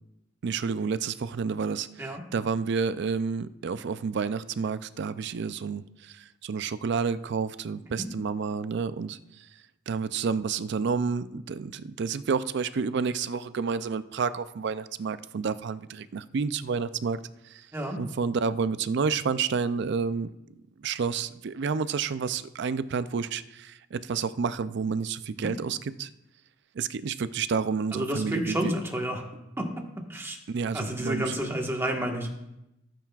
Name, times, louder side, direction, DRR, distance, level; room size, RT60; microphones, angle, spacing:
voice 1, 0.4-9.2 9.9-17.2 17.4-17.7 18.0-20.3 20.8-26.1 26.7-28.7 30.5-31.3, right 5 dB, 60° right, 14 dB, 0.4 m, -30 dB
voice 2, 27.9-29.2 29.6-29.7 30.1-30.4 30.7-32.3, right 1 dB, 15° right, 1 dB, 1.4 m, -30 dB
17.0 x 9.1 x 2.4 m, 0.88 s
head